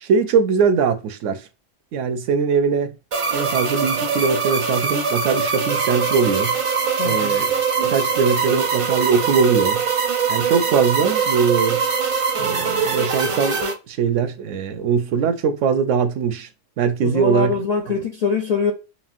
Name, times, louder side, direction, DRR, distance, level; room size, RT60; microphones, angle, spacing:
voice 1, 0.0-1.4 1.9-2.9 3.3-6.6 7.0-7.5 7.8-9.8 10.3-11.8 12.4-13.6 13.9-16.5 16.8-17.6 17.9-18.0, right 6 dB, 85° right, 0.9 m, -21 dB
sound 1, 3.1-13.7, right 5 dB, 55° right, 0.3 m, -22 dB
voice 2, 7.0-7.4 17.0-18.7, left 5 dB, 55° left, 0.4 m, -23 dB
4.1 x 2.1 x 2.5 m
omnidirectional pair, 1.2 m